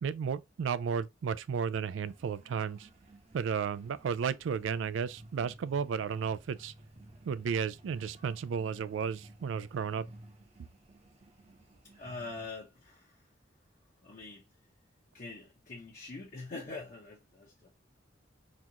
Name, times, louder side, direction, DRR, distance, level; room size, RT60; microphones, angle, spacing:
voice 1, 0.0-2.9 3.3-6.7 7.3-10.1, right 6 dB, 80° right, 0.3 m, -33 dB
sound 1, 2.0-12.5, right 1 dB, 35° right, 0.8 m, -55 dB
voice 2, 12.0-13.2 14.0-14.4 15.1-17.7, left 3 dB, 45° left, 0.8 m, -44 dB
4.0 x 2.4 x 2.8 m
head